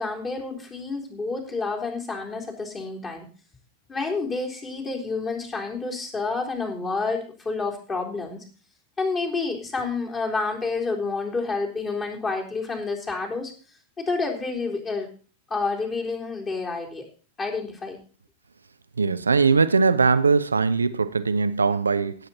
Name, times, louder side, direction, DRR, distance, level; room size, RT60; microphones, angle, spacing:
voice 1, 0.0-3.3 3.9-8.4 9.0-13.5 14.0-15.1 15.5-17.1 17.4-18.0, left 3 dB, 20° left, 0 dB, 3.7 m, -29 dB
voice 2, 19.0-22.2, right 4 dB, 75° right, 13 dB, 0.7 m, -20 dB
17.0 x 8.0 x 4.2 m, 0.38 s
figure-of-eight pair, 90°, 0 cm